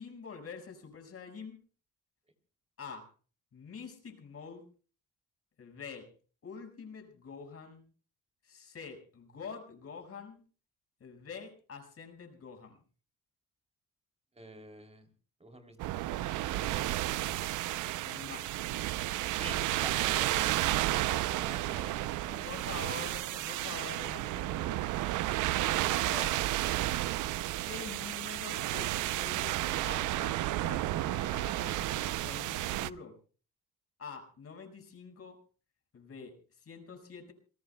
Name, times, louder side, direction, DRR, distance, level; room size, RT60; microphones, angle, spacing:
voice 1, 0.0-1.6 2.8-3.1 3.5-4.7 5.6-6.1 6.4-7.8 8.4-10.4 11.0-12.8 18.0-18.5 19.1-20.5 22.4-24.8 25.6-26.4 27.6-33.2 34.0-35.4 35.9-37.3, left 5 dB, 50° left, 4 dB, 5.4 m, -46 dB
voice 2, 14.3-15.1 15.4-16.0 19.4-23.2, right 2 dB, 20° right, 6 dB, 3.1 m, -48 dB
sound 1, 15.8-32.9, right 15 dB, 85° right, 0.6 m, -32 dB
28.0 x 18.0 x 2.2 m, 0.39 s
cardioid pair, 90°, 30 cm